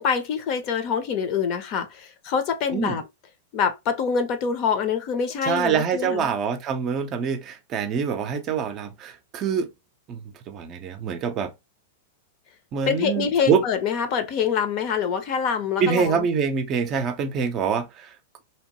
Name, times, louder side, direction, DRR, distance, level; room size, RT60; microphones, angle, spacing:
voice 1, 0.0-3.0 3.5-6.3 12.9-16.2, left 6 dB, 45° left, 0.7 m, -25 dB
voice 2, 5.4-9.7 10.1-10.2 10.5-11.5 12.7-13.6 15.8-18.2, right 6 dB, 35° right, 0.5 m, -25 dB
2.9 x 2.0 x 2.9 m
hypercardioid pair, 130°, 0 cm